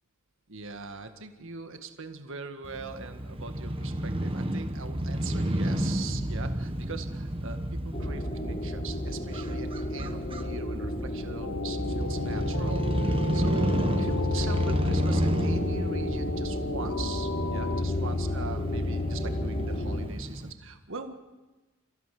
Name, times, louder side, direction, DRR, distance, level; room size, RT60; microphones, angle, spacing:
voice 1, 0.5-21.1, right 4 dB, 60° right, 7 dB, 1.8 m, -41 dB
Crow / Motorcycle, 2.6-20.5, right 1 dB, 25° right, 1.4 m, -32 dB
sound 1, 7.9-20.1, left 2 dB, 35° left, 3.5 m, -32 dB
sound 2, 11.4-17.8, left 3 dB, 70° left, 0.7 m, -35 dB
29.5 x 15.5 x 7.7 m, 1.1 s
head